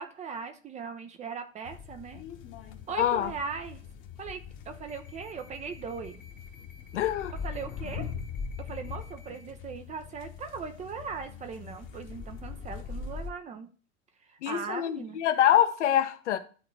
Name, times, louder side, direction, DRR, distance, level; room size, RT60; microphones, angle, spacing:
voice 1, 0.0-2.2 2.9-3.8 4.2-4.4 4.7-6.2 7.4-8.1 8.6-13.7 14.2-15.2, right 5 dB, 15° right, 0.6 m, -39 dB
sound 1, 1.6-13.3, left 6 dB, 30° left, 1.1 m, -41 dB
voice 2, 3.0-3.3 6.9-7.3 14.4-16.4, left 11 dB, 60° left, 1.0 m, -25 dB
11.5 x 3.9 x 4.5 m
figure-of-eight pair, 95°, 41 cm